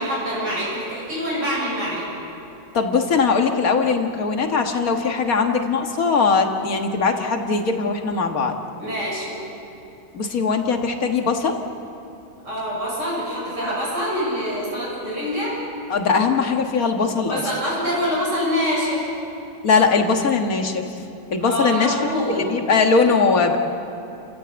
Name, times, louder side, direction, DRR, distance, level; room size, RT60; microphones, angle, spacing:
voice 1, 0.0-2.0 8.8-9.4 12.4-15.6 17.3-19.1 21.4-22.4, equal, 75° right, -7 dB, 7.9 m, -25 dB
voice 2, 2.7-8.6 10.1-11.6 15.9-17.4 19.6-21.0 21.3-22.0 22.3-23.6, left 4 dB, 55° left, 4 dB, 2.1 m, -20 dB
30.0 x 15.0 x 8.1 m, 2.8 s
omnidirectional pair, 1.9 m